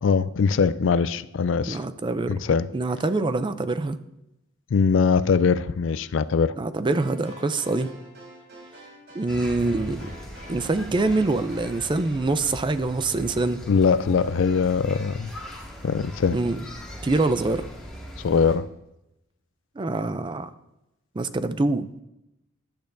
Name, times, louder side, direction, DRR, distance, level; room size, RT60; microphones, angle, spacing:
voice 1, 0.0-1.8 2.3-2.7 4.7-6.5 13.7-15.3 15.8-16.4 18.2-18.7, left 5 dB, 65° left, 0.4 m, -22 dB
voice 2, 1.7-2.3 2.7-4.0 6.5-7.9 9.1-10.1 10.5-13.6 16.3-16.6 17.0-17.7 19.8-20.5 21.2-22.0, right 2 dB, 25° right, 0.4 m, -25 dB
sound 1, 6.9-11.8, equal, 60° right, 4.0 m, -46 dB
sound 2, 9.3-18.5, equal, 5° left, 2.1 m, -40 dB
15.0 x 10.5 x 2.6 m
head